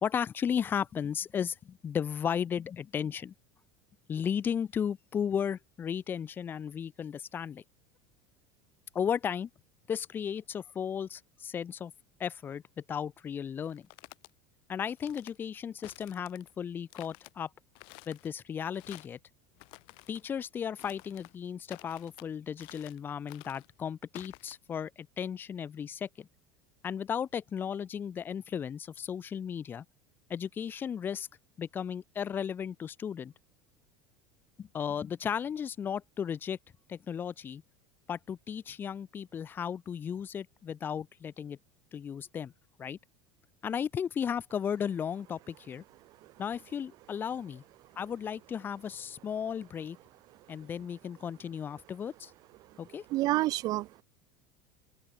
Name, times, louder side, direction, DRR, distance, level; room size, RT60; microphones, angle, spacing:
voice 1, 0.0-3.3 4.1-7.6 8.9-9.5 9.9-11.9 12.2-12.6 12.9-13.9 14.7-17.5 18.1-19.2 20.1-26.3 26.8-29.8 30.3-31.3 31.6-33.3 34.6-36.6 36.9-37.6 38.1-41.6 41.9-42.5 42.8-43.0 43.6-45.8 46.4-47.6 47.9-50.0 50.5-52.3 52.8-53.0, left 8 dB, 20° left, 1.5 m, -35 dB
sound 1, 13.6-14.3 14.9-15.4 15.8-16.5 16.9-17.3 17.8-18.3 18.7-19.2 19.6-20.2 20.8-21.4 21.7-22.3 22.6-23.0 23.3-23.7 24.2-24.5, left 30 dB, 50° left, 7.6 m, -52 dB
voice 2, 53.1-54.0, right 17 dB, 40° right, 1.8 m, -29 dB
open air
cardioid pair, 175°, 11 cm